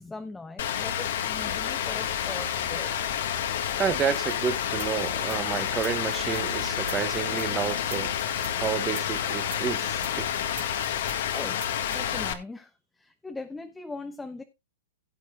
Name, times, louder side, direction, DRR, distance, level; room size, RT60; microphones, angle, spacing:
voice 1, 0.0-3.0 11.3-11.6 11.9-12.7 13.0-14.4, left 3 dB, 5° left, 0.6 m, -40 dB
Rain, 0.6-12.3, left 9 dB, 60° left, 1.5 m, -29 dB
voice 2, 3.8-8.1 8.6-10.3, right 7 dB, 20° right, 1.1 m, -30 dB
sound 1, 4.3-12.0, right 12 dB, 60° right, 2.7 m, -45 dB
17.0 x 8.1 x 2.3 m
hypercardioid pair, 150°, 0 cm